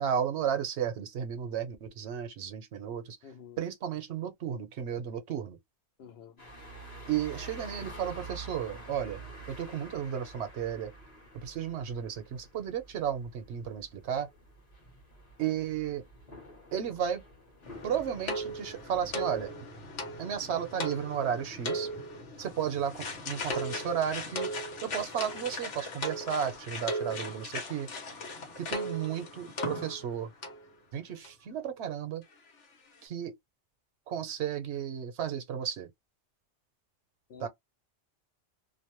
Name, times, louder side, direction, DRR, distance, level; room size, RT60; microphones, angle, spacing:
voice 1, 0.0-3.2 3.6-5.6 7.1-9.2 9.5-10.9 11.3-14.3 15.4-16.0 16.7-17.2 17.8-19.5 20.2-21.9 22.4-24.5 24.8-27.9 28.6-30.3 30.9-32.2 33.0-33.4 34.1-35.9 37.4-37.5, right 9 dB, 70° right, 0.9 m, -33 dB
voice 2, 3.2-3.6 6.0-6.4 37.3-37.5, left 7 dB, 65° left, 0.8 m, -49 dB
sound 1, 6.4-19.5, right 2 dB, 35° left, 1.1 m, -48 dB
sound 2, 17.6-30.2 30.4-30.6 31.2-31.3 31.6-31.7, left 1 dB, 85° left, 1.2 m, -38 dB
2.5 x 2.1 x 2.9 m
omnidirectional pair, 1.2 m